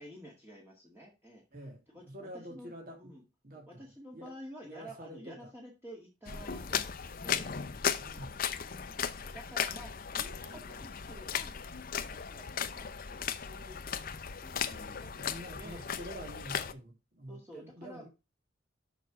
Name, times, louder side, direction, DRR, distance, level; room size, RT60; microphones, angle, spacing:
voice 1, 0.0-3.2 3.7-8.1 8.7-11.6 12.0-13.8 14.4-15.8 17.3-18.1, equal, 10° right, 1.8 m, -51 dB
voice 2, 1.5-3.1 3.4-3.9 4.1-4.3 4.6-5.5 8.0-8.4 15.1-18.1, equal, 50° right, 2.6 m, -47 dB
sound 1, 6.3-16.7, left 7 dB, 50° left, 0.7 m, -36 dB
6.8 x 6.0 x 5.0 m
head